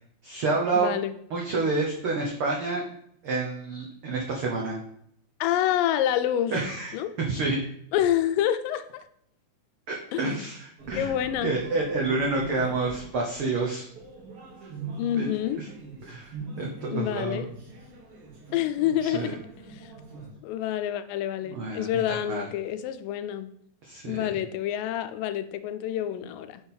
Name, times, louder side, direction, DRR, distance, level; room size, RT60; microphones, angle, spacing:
voice 1, 0.2-0.9 1.3-2.8 3.2-4.8 6.5-7.6 9.9-11.1 11.4-13.9 15.1-15.3 15.5-15.7 16.1-17.4 19.0-19.3 21.5-22.4 23.8-24.3, right 3 dB, 85° right, -1 dB, 1.2 m, -29 dB
voice 2, 0.8-1.1 5.4-6.6 6.9-7.1 7.9-9.0 10.1-10.4 11.0-11.5 15.0-15.6 16.9-17.5 18.5-19.4 19.7-19.9 20.4-23.5 24.0-26.6, left 11 dB, 85° left, 11 dB, 2.3 m, -27 dB
sound 1, 10.8-20.3, right 3 dB, 50° right, 2.4 m, -42 dB
6.0 x 4.4 x 5.4 m, 0.69 s
omnidirectional pair, 3.9 m